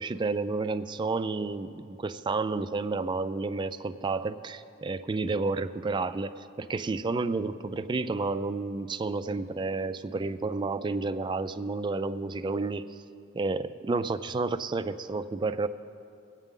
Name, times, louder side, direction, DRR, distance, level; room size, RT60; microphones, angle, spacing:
voice 1, 0.0-6.3 6.6-12.9 13.3-15.7, right 3 dB, 25° right, 12 dB, 0.3 m, -30 dB
20.5 x 9.0 x 3.7 m, 2.6 s
head